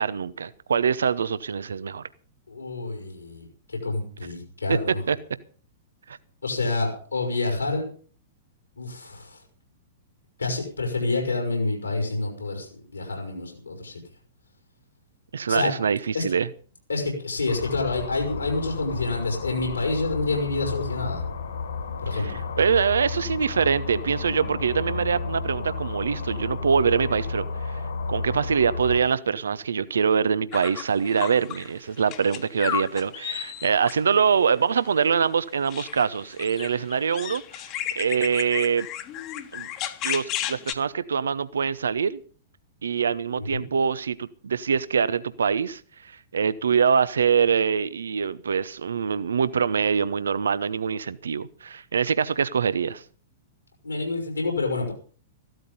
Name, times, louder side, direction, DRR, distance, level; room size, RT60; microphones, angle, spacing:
voice 1, 0.0-2.0 4.7-4.8 5.1-5.2 6.1-6.2 15.3-16.5 22.1-27.8 28.1-37.4 38.0-38.9 39.5-39.7 40.0-42.2 42.8-45.8 46.3-53.0, right 6 dB, 70° right, 16 dB, 0.7 m, -24 dB
voice 2, 2.5-5.0 6.4-7.8 8.8-9.4 10.4-14.0 15.5-15.7 16.1-16.2 16.9-21.2 22.0-22.4 43.4-43.6 53.8-54.9, left 3 dB, 80° left, 1 dB, 5.4 m, -28 dB
sound 1, 17.5-29.0, left 4 dB, 65° left, 3.7 m, -32 dB
sound 2, 30.5-31.7 32.0-34.0 35.6-40.7, left 12 dB, 35° left, 1.5 m, -33 dB
15.0 x 12.5 x 5.5 m, 0.43 s
figure-of-eight pair, 105°, 0 cm